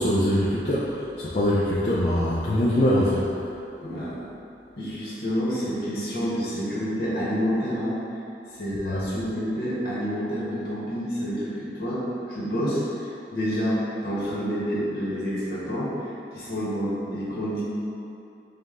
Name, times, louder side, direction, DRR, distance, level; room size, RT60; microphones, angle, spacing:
voice 1, 0.0-3.2 8.9-9.0, equal, 35° left, -8 dB, 0.4 m, -23 dB
voice 2, 3.8-4.1 4.8-8.0 8.6-12.0 12.3-15.9 16.3-17.6, equal, 60° left, -8 dB, 1.1 m, -28 dB
5.0 x 2.2 x 3.6 m, 2.6 s
head